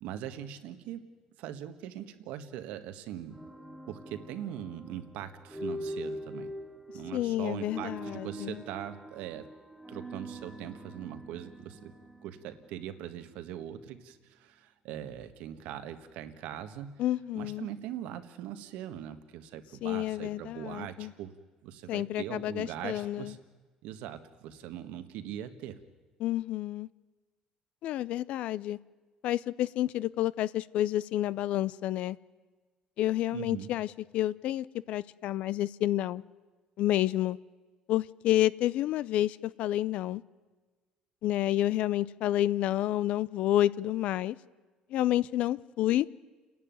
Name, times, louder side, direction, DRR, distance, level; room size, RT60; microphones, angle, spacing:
voice 1, 0.0-1.0 1.4-3.5 3.9-6.5 6.9-9.5 9.9-11.9 12.2-17.0 17.3-21.3 21.6-23.4 23.8-25.8 33.3-33.7, right 10 dB, 80° right, 1.5 m, -41 dB
sound 1, 3.3-13.4, equal, ahead, 2.0 m, -43 dB
voice 2, 7.1-8.6 17.0-17.7 19.8-21.1 21.9-23.3 26.2-26.9 27.8-28.8 29.2-32.2 33.0-33.9 34.1-36.2 36.8-37.4 37.9-40.2 41.2-44.4 44.9-46.1, left 13 dB, 65° left, 0.6 m, -29 dB
29.5 x 11.0 x 9.4 m
cardioid pair, 130°, 2 cm